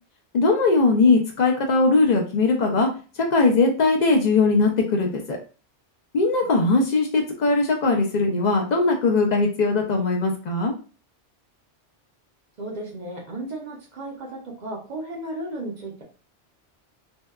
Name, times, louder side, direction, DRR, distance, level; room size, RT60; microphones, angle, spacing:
voice 1, 0.3-2.9 3.3-5.4 6.1-10.7, left 3 dB, 60° left, 1 dB, 0.4 m, -20 dB
voice 2, 12.6-16.0, right 1 dB, 50° right, -1 dB, 0.6 m, -34 dB
2.7 x 2.2 x 2.2 m, 0.36 s
omnidirectional pair, 1.2 m